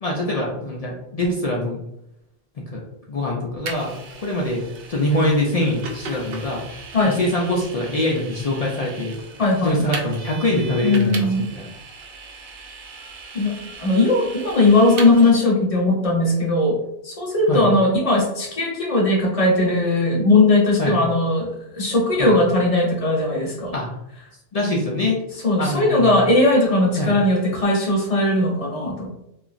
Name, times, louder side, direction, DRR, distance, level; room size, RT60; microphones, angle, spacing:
voice 1, 0.0-1.8 2.7-2.8 3.1-3.9 4.2-4.6 4.9-6.6 7.0-9.2 9.6-11.7 17.5-17.7 20.8-21.0 22.2-22.4 23.7-23.9 24.5-25.2 25.6-26.3 27.0-27.1, left 1 dB, 55° left, -2 dB, 0.4 m, -23 dB
Vehicle, 3.7-15.3, right 4 dB, 70° right, 0.8 m, -37 dB
voice 2, 9.4-9.8 10.8-11.4 13.3-16.8 17.0-23.7 25.4-29.1, left 2 dB, 35° left, -3 dB, 0.9 m, -18 dB
2.9 x 2.4 x 2.4 m, 0.81 s
omnidirectional pair, 1.0 m